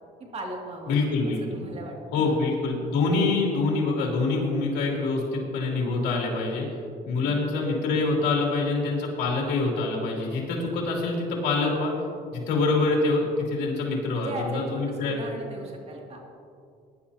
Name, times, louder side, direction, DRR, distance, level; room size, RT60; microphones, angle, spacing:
voice 1, 0.2-1.0 1.3-2.4 7.2-7.5 12.5-12.6 14.1-16.2, right 1 dB, 40° right, 0 dB, 2.5 m, -37 dB
voice 2, 0.9-1.6 2.1-6.7 7.0-11.9 12.3-15.3, left 3 dB, 85° left, -2 dB, 3.0 m, -25 dB
18.5 x 11.0 x 2.9 m, 2.4 s
cardioid pair, 110°, 17 cm